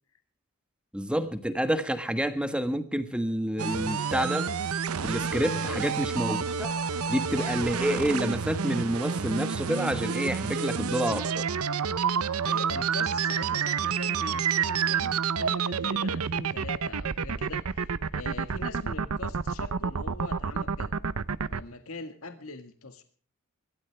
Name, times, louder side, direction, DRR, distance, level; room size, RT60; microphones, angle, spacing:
voice 1, 0.9-4.5 5.1-6.7 7.1-11.5, equal, 5° right, 9 dB, 1.4 m, -28 dB
sound 1, 3.6-21.6, right 6 dB, 85° right, 0.8 m, -29 dB
voice 2, 12.4-20.9 21.5-23.0, left 3 dB, 75° left, 8 dB, 1.7 m, -42 dB
25.0 x 13.5 x 3.3 m, 0.44 s
head